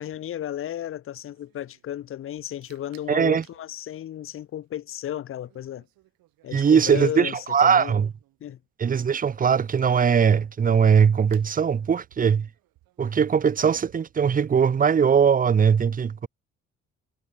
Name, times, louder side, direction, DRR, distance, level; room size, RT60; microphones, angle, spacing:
voice 1, 0.0-5.9 6.4-7.9 8.4-8.6, left 11 dB, 40° left, 0.4 m, -34 dB
sound 1, 0.7-15.7, right 18 dB, 85° right, 5.9 m, -63 dB
voice 2, 3.1-3.4 6.5-8.1 8.8-12.5 13.0-16.3, right 7 dB, 25° right, 0.5 m, -20 dB
supercardioid pair, 50°, 35 cm